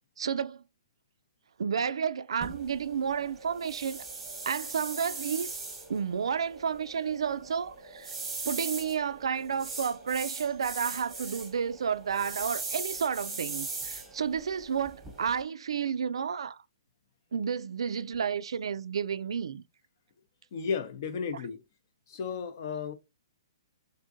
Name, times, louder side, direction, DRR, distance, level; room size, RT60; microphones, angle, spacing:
voice 1, 0.2-0.6 1.6-4.0 4.4-5.6 5.9-8.1 8.4-16.6 17.3-19.6, right 7 dB, 75° right, 0.4 m, -31 dB
sound 1, 2.4-15.4, right 3 dB, 5° right, 1.0 m, -40 dB
voice 2, 20.5-21.6 22.1-22.9, left 6 dB, 40° left, 0.6 m, -33 dB
3.7 x 3.7 x 2.6 m
hypercardioid pair, 170°, 3 cm